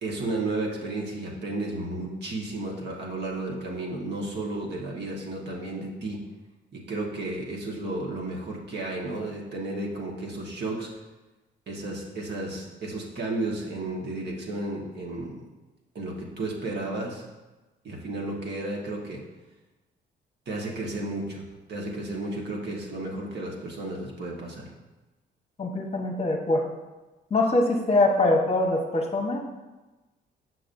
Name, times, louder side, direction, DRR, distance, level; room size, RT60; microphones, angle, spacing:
voice 1, 0.0-6.2 6.7-10.9 11.7-15.4 15.9-17.3 17.8-19.2 20.5-21.4 21.7-24.7, right 2 dB, 60° right, -2 dB, 1.4 m, -33 dB
voice 2, 25.6-26.7 27.3-29.4, left 2 dB, 30° left, 1 dB, 0.9 m, -23 dB
6.7 x 6.0 x 2.6 m, 1.1 s
cardioid pair, 90°, 20 cm